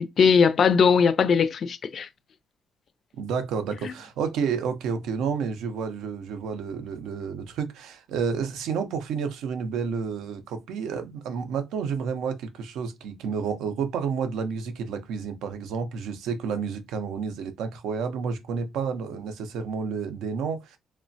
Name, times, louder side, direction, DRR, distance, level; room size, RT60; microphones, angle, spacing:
voice 1, 0.0-2.1 3.8-3.9, left 6 dB, 55° left, 0.3 m, -20 dB
voice 2, 3.2-20.8, right 6 dB, 85° right, 0.5 m, -30 dB
3.0 x 2.1 x 2.5 m
cardioid pair, 90°, 0 cm